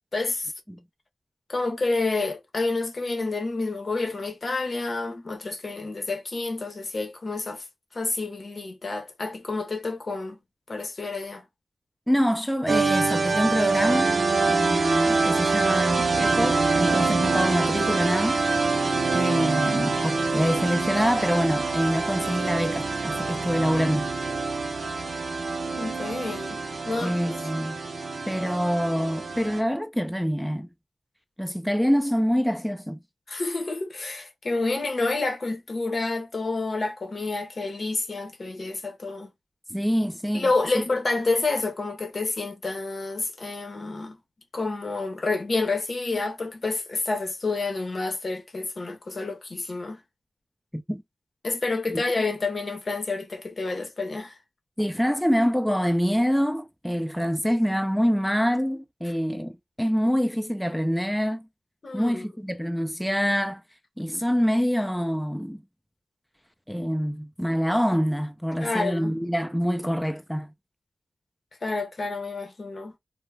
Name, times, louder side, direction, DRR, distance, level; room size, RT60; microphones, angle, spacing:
voice 1, 0.1-0.5 1.5-7.6 7.9-10.4 10.7-11.4 20.3-20.5 25.8-26.6 26.8-27.2 33.3-39.3 40.3-44.2 44.5-50.0 51.4-54.4 61.8-62.3 68.6-69.1 71.6-73.0, left 3 dB, 60° left, 0.7 m, -29 dB
voice 2, 12.1-14.2 14.5-18.4 19.1-24.1 27.0-27.8 28.3-30.7 31.4-33.0 39.7-40.5 40.7-40.8 50.7-51.0 51.9-52.0 54.8-61.5 61.9-63.6 64.0-65.6 66.7-70.5, equal, ahead, 0.4 m, -25 dB
sound 1, 12.7-29.6, right 3 dB, 70° right, 0.6 m, -25 dB
2.2 x 2.1 x 3.2 m
cardioid pair, 60°, 0 cm